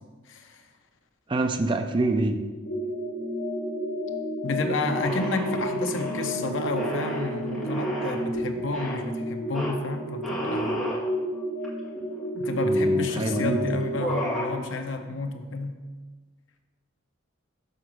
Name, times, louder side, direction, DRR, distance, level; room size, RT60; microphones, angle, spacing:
voice 1, 0.3-0.6 4.4-10.9 12.3-15.8, left 3 dB, 65° left, 6 dB, 0.7 m, -31 dB
voice 2, 1.3-2.4 12.7-13.7, right 2 dB, 25° right, 6 dB, 0.4 m, -26 dB
sound 1, 2.7-14.5, equal, 35° left, 0.8 m, -30 dB
sound 2, 5.0-6.3 6.7-8.2 8.7-9.0 9.5-9.7 10.2-11.0 11.6-11.7 12.0-12.7 13.3-13.5 13.8-14.5, equal, ahead, 1.8 m, -33 dB
sound 3, 5.8-9.6 9.9-10.0, right 2 dB, 90° right, 0.5 m, -40 dB
6.5 x 3.9 x 6.2 m, 1.4 s
head